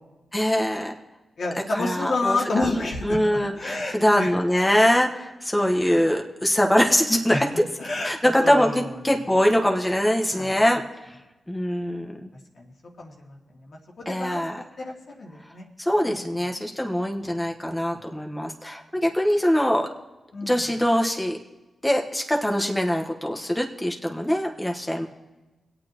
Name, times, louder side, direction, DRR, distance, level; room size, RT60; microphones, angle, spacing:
voice 1, 0.3-0.9 1.7-2.7 3.0-7.6 8.0-10.8 11.5-12.3 14.0-14.6 15.8-19.9 20.4-21.4 21.8-25.1, equal, 15° left, 1 dB, 1.4 m, -23 dB
voice 2, 1.4-4.3 5.8-6.0 7.3-7.4 7.8-8.9 10.3-10.5 12.6-12.7 13.0-13.4 13.7-14.4 14.8-15.7 16.0-16.1 20.3-20.6, left 2 dB, 70° left, -2 dB, 2.4 m, -29 dB
24.0 x 8.8 x 3.1 m, 1.1 s
cardioid pair, 45°, 0 cm